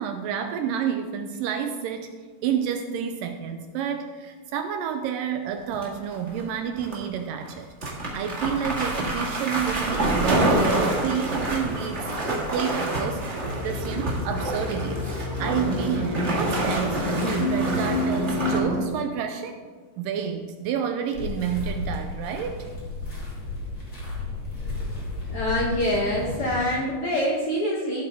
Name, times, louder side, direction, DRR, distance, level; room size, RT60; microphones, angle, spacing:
voice 1, 0.0-2.1 2.4-7.7 8.1-15.0 15.4-19.6 20.0-22.7, right 8 dB, 80° right, 6 dB, 2.1 m, -29 dB
sound 1, 5.7-6.4 6.8-7.0 7.5-7.6 7.8-18.6, right 1 dB, 40° right, 1.0 m, -27 dB
sound 2, 13.4-18.9, left 1 dB, 40° left, 1.2 m, -28 dB
sound 3, 21.1-26.6, left 2 dB, 25° left, 3.0 m, -33 dB
voice 2, 25.3-28.0, left 1 dB, 80° left, -2 dB, 1.2 m, -25 dB
15.0 x 7.9 x 3.5 m, 1.5 s
omnidirectional pair, 4.3 m